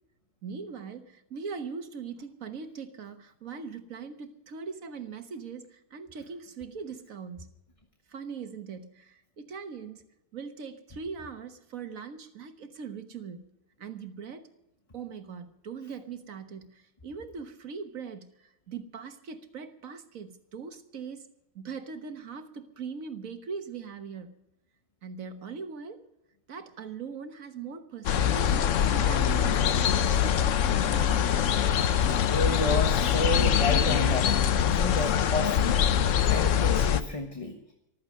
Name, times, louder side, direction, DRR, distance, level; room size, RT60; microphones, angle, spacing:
voice 1, 0.4-7.5 8.1-10.0 10.3-13.5 13.8-14.5 14.9-21.3 21.5-24.4 25.0-26.0 26.5-31.5, right 5 dB, 80° right, 1.7 m, -40 dB
sound 1, 28.1-37.0, left 9 dB, 70° left, 1.1 m, -24 dB
voice 2, 32.3-37.7, left 2 dB, 25° left, 1.3 m, -31 dB
14.5 x 13.5 x 6.4 m
omnidirectional pair, 1.4 m